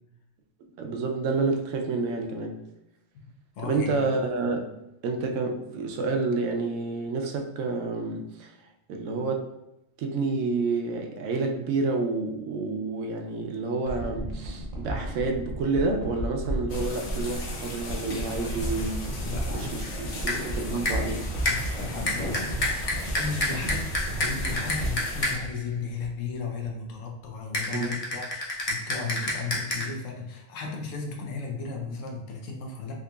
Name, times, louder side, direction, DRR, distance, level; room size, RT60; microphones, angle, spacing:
voice 1, 0.8-2.6 3.6-4.8 5.0-8.5 8.9-9.5 10.0-19.1 19.5-21.2 27.7-28.0, right 3 dB, 80° right, 3 dB, 0.9 m, -29 dB
voice 2, 3.6-4.1 19.2-19.9 20.3-21.0 21.4-22.9 23.2-32.9, left 5 dB, 90° left, 0 dB, 1.1 m, -35 dB
sound 1, 13.8-26.3 26.6-26.7, right 1 dB, 50° right, 0.8 m, -34 dB
sound 2, 16.7-25.4, left 1 dB, 65° left, 0.9 m, -37 dB
sound 3, 19.8-20.0 20.3-20.5 20.9-21.2 21.4-25.6 27.5-29.9, left 2 dB, 40° left, 0.6 m, -30 dB
3.7 x 2.9 x 2.3 m, 0.88 s
omnidirectional pair, 1.3 m